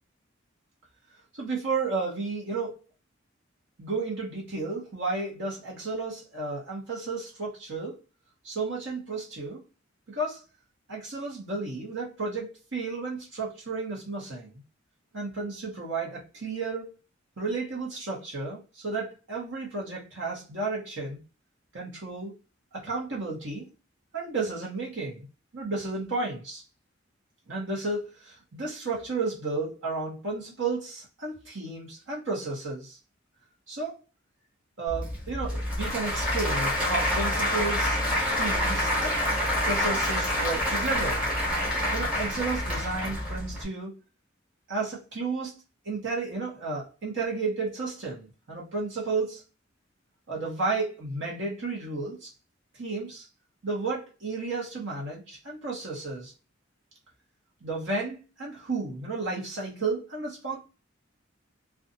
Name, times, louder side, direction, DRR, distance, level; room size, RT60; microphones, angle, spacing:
voice 1, 1.4-2.8 3.8-8.0 8.4-9.6 10.1-10.4 10.9-14.5 15.1-16.9 17.4-21.2 21.7-22.3 22.7-23.7 24.1-25.2 25.5-26.6 27.5-33.0 33.7-34.0 34.8-38.0 38.3-39.2 39.6-41.3 41.9-44.0 44.7-45.6 45.8-49.4 50.3-52.3 52.7-53.2 53.6-56.3 57.6-60.6, right 3 dB, 65° right, 1.0 m, -32 dB
Applause / Crowd, 34.9-43.6, left 1 dB, 5° right, 1.0 m, -27 dB
2.5 x 2.3 x 2.6 m
head